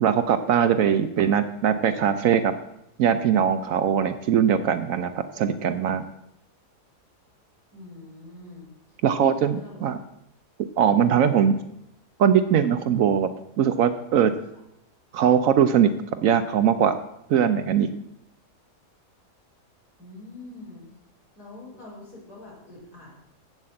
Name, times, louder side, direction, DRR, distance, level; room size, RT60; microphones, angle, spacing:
voice 1, 0.0-2.5 3.0-6.0 9.0-10.0 10.8-11.6 12.2-13.3 13.6-14.3 15.1-15.9 16.2-17.0 17.3-17.9, right 8 dB, 65° right, 11 dB, 0.9 m, -21 dB
voice 2, 7.7-8.7 9.1-9.9 11.2-11.5 12.7-12.9 20.0-20.8 21.4-23.1, left 2 dB, 70° left, -6 dB, 4.6 m, -44 dB
7.6 x 7.4 x 7.6 m, 0.83 s
omnidirectional pair, 1.7 m